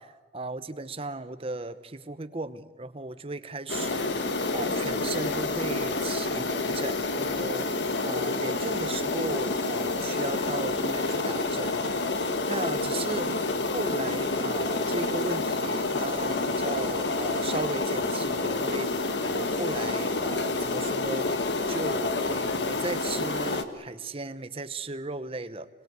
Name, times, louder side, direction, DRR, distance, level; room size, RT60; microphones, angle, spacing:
voice 1, 0.0-4.2 4.5-11.9 12.5-13.3 13.7-21.3 21.7-25.7, right 2 dB, 35° right, 11 dB, 1.0 m, -36 dB
sound 1, 3.7-23.6, left 3 dB, 90° left, 1.5 m, -28 dB
26.0 x 21.5 x 8.3 m, 1.3 s
head